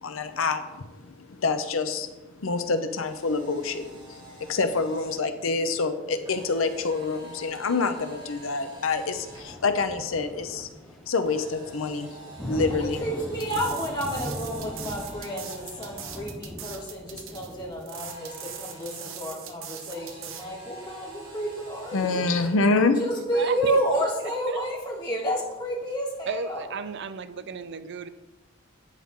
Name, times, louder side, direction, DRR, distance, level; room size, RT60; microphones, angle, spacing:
voice 1, 0.0-2.1 2.4-10.7 11.1-13.0 21.9-23.0, left 3 dB, 80° left, 9 dB, 0.7 m, -27 dB
Camera, 3.0-5.2 6.2-9.5 11.2-16.2 17.9-19.1 19.9-22.6, equal, 25° right, 3.7 m, -47 dB
sound 1, 9.0-17.8, equal, ahead, 0.9 m, -40 dB
voice 2, 12.7-22.3 23.0-26.6, right 1 dB, 25° left, -5 dB, 3.3 m, -30 dB
sound 2, 13.3-20.5, right 9 dB, 75° right, 1.0 m, -41 dB
voice 3, 23.1-23.8 24.5-24.6 26.3-28.1, right 5 dB, 60° right, 13 dB, 0.5 m, -34 dB
11.0 x 8.8 x 3.7 m, 1.1 s
head